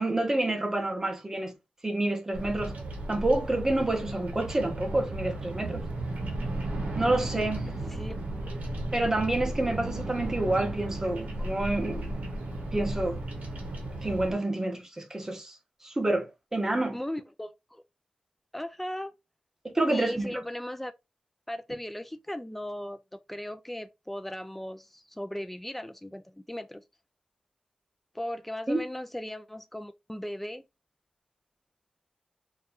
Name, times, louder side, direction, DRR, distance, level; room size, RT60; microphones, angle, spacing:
voice 1, 0.0-1.5 1.8-2.8 3.1-5.8 6.9-7.9 8.9-12.1 12.7-13.2 14.0-15.6 15.8-17.0 19.6-20.4 28.7-28.8, right 2 dB, 20° right, 0.7 m, -28 dB
Bird vocalization bird call bird song, 2.3-14.3, right 1 dB, 75° right, 0.7 m, -34 dB
voice 2, 16.9-17.8 18.5-19.1 19.9-20.9 21.5-23.0 23.3-26.8 28.1-30.6, left 1 dB, 5° left, 0.3 m, -37 dB
2.7 x 2.3 x 2.4 m
wide cardioid pair, 80°, 3 cm